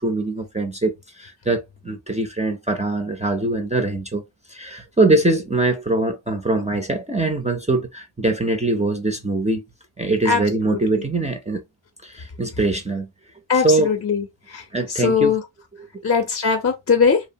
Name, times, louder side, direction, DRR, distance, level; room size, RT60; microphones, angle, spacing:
voice 1, 0.0-4.2 4.5-9.6 10.0-11.6 12.0-13.1 13.5-13.9 14.7-15.3 15.8-15.9, right 2 dB, 15° right, 0.4 m, -22 dB
voice 2, 13.5-14.2 14.5-14.6 15.0-15.4 16.0-17.2, left 5 dB, 30° left, 0.5 m, -19 dB
2.8 x 2.0 x 2.6 m
wide cardioid pair, 80°, 50 cm